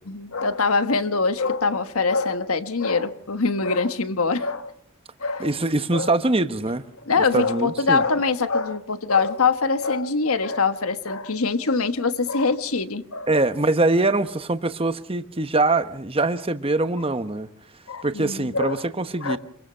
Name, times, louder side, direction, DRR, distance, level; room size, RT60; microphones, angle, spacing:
voice 1, 0.1-4.7 5.2-5.5 5.9-6.1 7.1-13.3 17.9-18.9 19.2-19.4, left 4 dB, 80° left, 1.4 m, -23 dB
voice 2, 5.4-6.8 7.2-8.0 13.3-17.5 18.0-19.4, right 2 dB, 25° right, 1.0 m, -23 dB
27.0 x 22.5 x 5.6 m
head